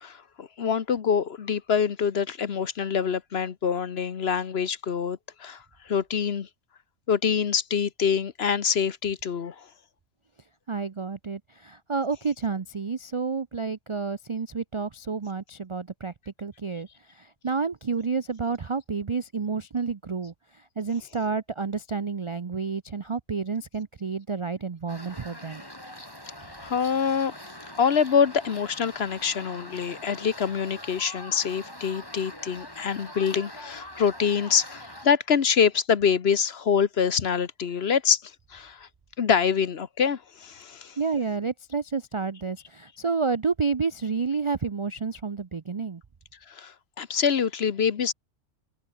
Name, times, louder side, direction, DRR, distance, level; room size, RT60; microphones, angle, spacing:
voice 1, 0.0-5.6 5.9-6.5 7.1-9.5 26.6-27.3 27.8-38.2 38.5-38.9 39.2-41.0 46.5-48.1, left 7 dB, 50° left, 1.1 m, -25 dB
voice 2, 10.7-25.6 41.0-46.0, right 5 dB, 40° right, 0.4 m, -30 dB
sound 1, 24.9-35.1, left 1 dB, 15° left, 6.1 m, -43 dB
omnidirectional pair, 1.4 m